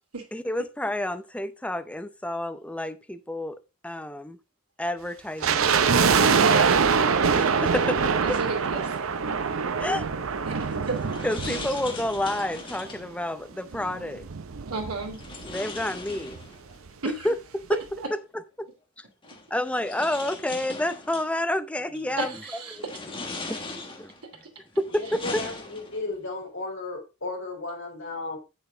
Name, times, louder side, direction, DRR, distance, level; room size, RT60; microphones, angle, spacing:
voice 1, 0.3-4.4 4.8-5.8 7.4-7.5 7.7-8.0 8.3-8.4 9.8-10.1 11.2-14.2 15.5-16.4 17.2-17.4 17.7-17.8 18.1-18.2 19.5-22.3 23.5-24.1 24.8-25.4, left 1 dB, 5° left, 0.5 m, -29 dB
sound 1, 5.4-12.7 12.9-13.0 13.7-15.5 15.8-15.9 16.1-16.4 16.9-17.0, right 6 dB, 65° right, 0.6 m, -24 dB
voice 2, 6.3-7.0 7.2-7.3 8.2-9.0 10.4-11.2 14.7-15.2 17.0-17.3 22.2-22.3, right 3 dB, 80° right, 2.9 m, -31 dB
sound 2, 10.6-13.1 15.1-16.8 18.1-18.2 19.2-21.3 21.9-22.3 22.8-24.2 24.7-26.1, left 3 dB, 20° left, 1.3 m, -39 dB
voice 3, 24.9-28.4, left 3 dB, 55° left, 3.6 m, -34 dB
8.0 x 6.9 x 3.9 m
head